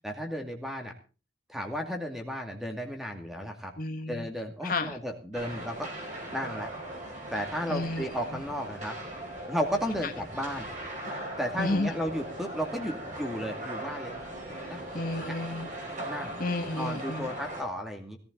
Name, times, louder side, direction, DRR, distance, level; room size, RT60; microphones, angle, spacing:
voice 1, 0.0-0.9 1.5-3.7 4.1-5.9 6.3-6.7 7.3-8.9 9.5-10.7 11.4-14.2 14.5-14.8 15.1-15.4 16.0-16.4 16.8-18.2, equal, ahead, 2 dB, 2.4 m, -34 dB
voice 2, 3.8-4.3 4.6-5.0 7.7-8.4 10.0-10.1 11.6-11.9 14.9-15.7 16.4-17.3, left 2 dB, 50° left, 6 dB, 1.3 m, -32 dB
sound 1, 5.3-17.6, right 1 dB, 40° right, 4.9 m, -39 dB
17.0 x 14.5 x 4.0 m, 0.35 s
head